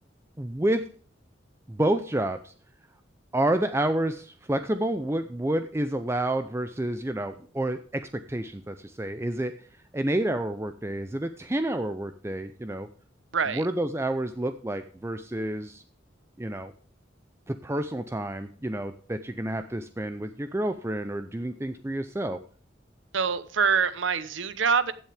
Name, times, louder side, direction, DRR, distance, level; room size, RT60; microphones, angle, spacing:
voice 1, 0.4-0.9 1.7-2.5 3.3-9.7 9.9-12.9 13.5-15.8 16.4-16.7 17.5-22.4, right 1 dB, 15° right, 9 dB, 0.5 m, -29 dB
voice 2, 13.3-13.6 23.1-24.9, right 6 dB, 85° right, 14 dB, 0.9 m, -25 dB
15.5 x 7.3 x 3.4 m, 0.42 s
head